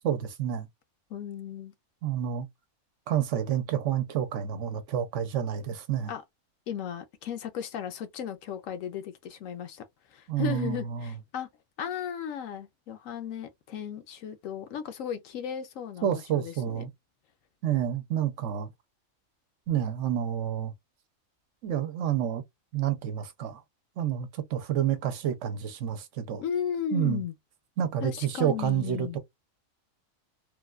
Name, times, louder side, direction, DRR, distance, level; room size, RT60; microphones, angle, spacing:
voice 1, 0.0-0.7 2.0-2.5 3.1-6.1 10.3-11.1 16.0-16.9 17.6-18.7 19.7-20.7 21.6-22.4 22.7-23.6 24.0-26.4 26.9-27.2 27.8-29.2, right 10 dB, 70° right, 0.9 m, -29 dB
voice 2, 1.1-1.7 6.1-6.2 6.7-11.5 11.8-16.8 26.4-27.3 28.0-29.2, left 8 dB, 75° left, 1.0 m, -35 dB
3.2 x 2.2 x 2.3 m
omnidirectional pair, 1.4 m